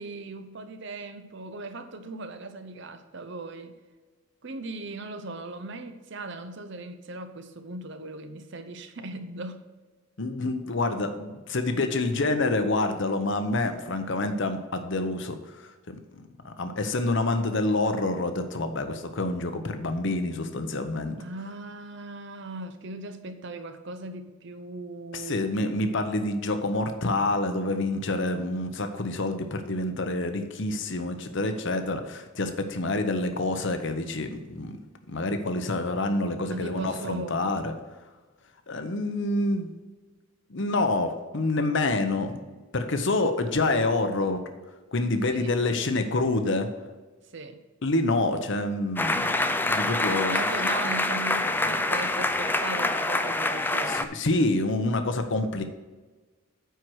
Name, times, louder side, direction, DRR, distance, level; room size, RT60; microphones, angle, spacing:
voice 1, 0.0-3.7 4.4-9.6 21.2-25.5 36.5-37.5 45.3-45.6 47.3-47.6 50.3-54.0, right 2 dB, 60° right, 9 dB, 0.8 m, -38 dB
voice 2, 10.2-21.2 25.1-34.8 35.1-37.7 38.7-39.7 40.5-42.4 42.7-44.4 44.9-46.7 47.8-50.5 53.9-55.6, left 2 dB, 60° left, 7 dB, 0.9 m, -27 dB
sound 1, 49.0-54.0, left 2 dB, 10° left, 0.4 m, -26 dB
9.2 x 4.7 x 6.4 m, 1.3 s
head